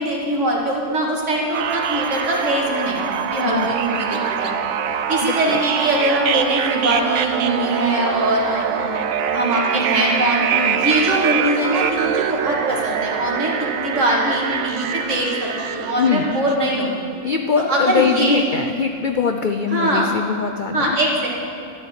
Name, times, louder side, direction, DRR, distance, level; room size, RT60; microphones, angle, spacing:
voice 1, 0.0-4.5 5.1-9.0 9.3-10.4 10.8-16.9 17.7-18.5 19.7-20.2 20.7-21.3, right 1 dB, 50° right, -2 dB, 2.7 m, -22 dB
sound 1, 1.5-16.5, right 8 dB, 70° right, 1.1 m, -24 dB
voice 2, 3.4-3.7 5.2-5.6 10.5-10.9 16.0-16.3 17.2-21.0, left 6 dB, 60° left, 6 dB, 0.5 m, -22 dB
13.0 x 7.1 x 10.0 m, 2.6 s
omnidirectional pair, 1.6 m